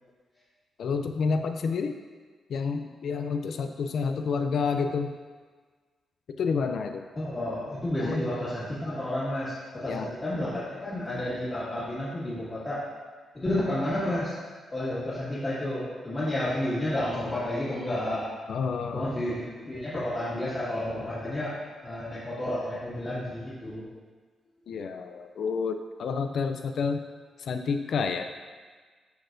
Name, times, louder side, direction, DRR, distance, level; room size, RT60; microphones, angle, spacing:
voice 1, 0.8-1.9 2.5-5.1 6.4-7.0 8.0-8.2 9.9-10.1 18.5-19.1 24.7-27.0 27.4-28.3, left 5 dB, 60° left, 7 dB, 0.4 m, -29 dB
voice 2, 7.1-12.8 13.3-14.3 14.7-18.2 18.9-21.6 21.8-23.8, left 1 dB, 25° left, -13 dB, 1.9 m, -31 dB
12.5 x 4.2 x 2.6 m, 1.5 s
wide cardioid pair, 150°, 0 cm